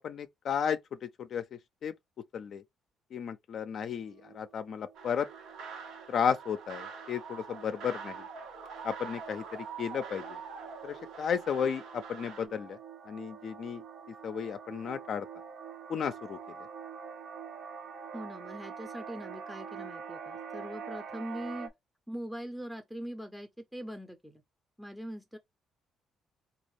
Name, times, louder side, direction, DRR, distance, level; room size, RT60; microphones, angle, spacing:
voice 1, 0.0-1.9 2.3-2.6 3.1-5.3 6.1-8.2 8.8-10.4 10.8-12.8 13.1-13.8 14.2-15.3 15.9-16.4, left 7 dB, 60° left, 0.4 m, -34 dB
sound 1, 4.0-21.7, right 6 dB, 60° right, 0.7 m, -47 dB
sound 2, 4.9-12.5, right 5 dB, 85° right, 1.0 m, -45 dB
voice 2, 18.1-21.7 22.1-24.4 24.8-25.4, equal, ahead, 0.5 m, -41 dB
3.9 x 2.3 x 3.1 m
cardioid pair, 95°, 0 cm